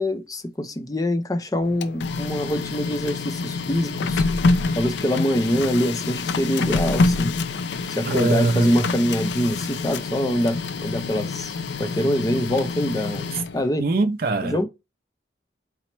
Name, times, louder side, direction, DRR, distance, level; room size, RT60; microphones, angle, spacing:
voice 1, 0.0-4.2 4.8-7.3 7.9-13.9 14.4-14.7, equal, 20° left, 0.4 m, -24 dB
Printer, 1.6-13.7, left 3 dB, 80° left, 0.4 m, -26 dB
voice 2, 8.1-8.7 13.8-14.6, right 2 dB, 50° right, 0.4 m, -22 dB
4.1 x 2.0 x 4.4 m
head